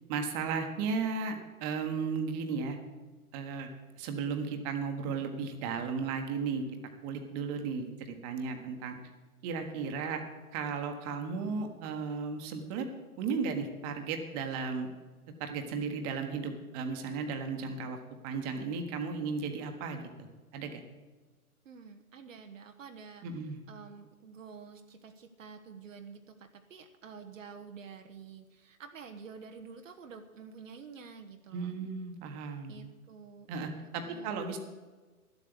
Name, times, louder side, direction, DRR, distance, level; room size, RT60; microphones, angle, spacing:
voice 1, 0.1-2.8 3.3-3.7 4.0-6.6 7.0-9.0 9.4-10.2 10.5-12.9 13.2-14.9 15.4-18.0 18.2-20.3 20.5-20.8 23.2-23.6 31.5-32.7 33.5-34.6, right 5 dB, 25° right, 5 dB, 1.4 m, -35 dB
voice 2, 21.6-23.3 23.7-31.7 32.7-33.5 34.0-34.4, right 5 dB, 60° right, 6 dB, 1.1 m, -49 dB
12.0 x 8.1 x 7.9 m, 1.3 s
figure-of-eight pair, 125°, 44 cm